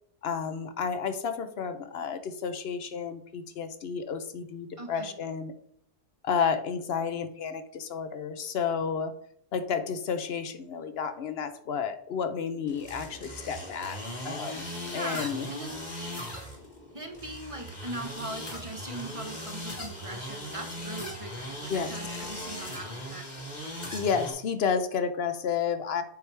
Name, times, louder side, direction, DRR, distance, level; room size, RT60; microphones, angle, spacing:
voice 1, 0.2-5.5 6.2-9.1 9.5-14.0 14.2-15.5 21.7-21.9 23.9-26.0, left 6 dB, 70° left, 10 dB, 0.9 m, -31 dB
voice 2, 4.8-5.2 14.9-15.7 16.9-23.3, right 2 dB, 35° right, 4 dB, 0.7 m, -40 dB
sound 1, 12.7-24.3, equal, 40° left, 1.6 m, -39 dB
8.2 x 4.7 x 3.3 m, 0.67 s
omnidirectional pair, 1.1 m